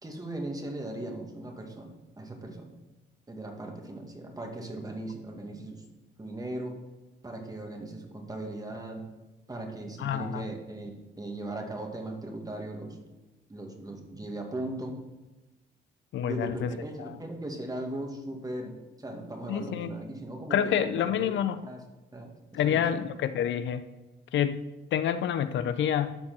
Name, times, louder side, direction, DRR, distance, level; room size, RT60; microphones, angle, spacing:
voice 1, 0.0-2.7 3.3-5.8 6.2-6.8 7.2-9.1 9.5-10.9 11.2-13.0 13.5-15.0 16.3-21.3 21.6-21.8 22.1-23.1, right 1 dB, 20° right, 2 dB, 2.0 m, -38 dB
voice 2, 10.0-10.5 16.1-16.7 17.0-17.2 19.5-19.9 20.5-21.6 22.5-23.8 24.3-26.1, left 9 dB, 70° left, 12 dB, 0.6 m, -28 dB
12.0 x 4.4 x 6.0 m, 1.1 s
cardioid pair, 90°, 20 cm